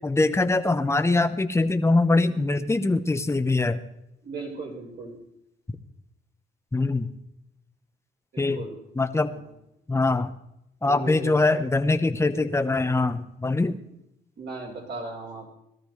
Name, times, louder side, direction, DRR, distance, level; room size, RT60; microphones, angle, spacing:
voice 1, 0.0-3.8 6.7-7.1 8.4-8.6 9.0-9.3 9.9-10.3 10.8-13.7, left 2 dB, 15° left, 9 dB, 0.9 m, -23 dB
voice 2, 4.2-5.2 8.3-8.8 9.3-9.4 10.9-11.4 14.4-15.5, right 3 dB, 60° right, -1 dB, 4.2 m, -37 dB
19.0 x 13.5 x 3.3 m, 0.82 s
cardioid pair, 90°, 20 cm